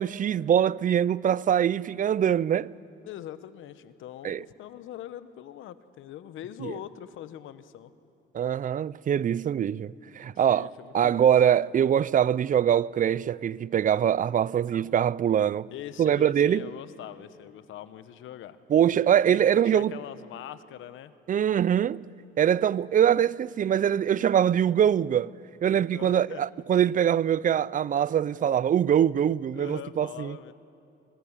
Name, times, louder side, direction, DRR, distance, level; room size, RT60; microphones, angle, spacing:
voice 1, 0.0-2.7 4.2-4.4 6.6-6.7 8.3-10.7 10.9-15.7 16.0-16.7 18.7-20.0 21.3-22.1 22.4-25.3 25.6-30.4, right 9 dB, 40° right, 0.4 m, -23 dB
voice 2, 3.0-7.9 10.3-11.3 15.7-18.6 19.3-21.1 25.8-26.4 28.3-28.5 29.5-30.5, left 12 dB, 85° left, 1.0 m, -42 dB
25.0 x 21.5 x 7.2 m
cardioid pair, 90°, 20 cm